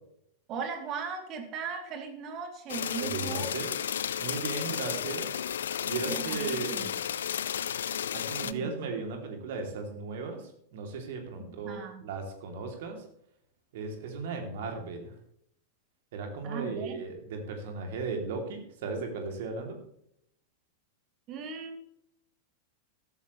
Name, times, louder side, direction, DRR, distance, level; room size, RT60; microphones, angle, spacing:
voice 1, 0.5-3.5 6.1-6.9 8.4-8.9 11.4-12.0 16.4-17.0 21.3-21.8, right 6 dB, 35° right, 4 dB, 3.0 m, -38 dB
sound 1, 2.7-8.5, left 9 dB, 65° left, 0.5 m, -33 dB
voice 2, 3.0-3.7 4.2-5.4 5.8-6.8 8.1-13.0 13.7-15.1 16.1-19.8, right 4 dB, 55° right, 4 dB, 2.9 m, -36 dB
14.5 x 13.0 x 3.2 m, 0.72 s
figure-of-eight pair, 90°, 0 cm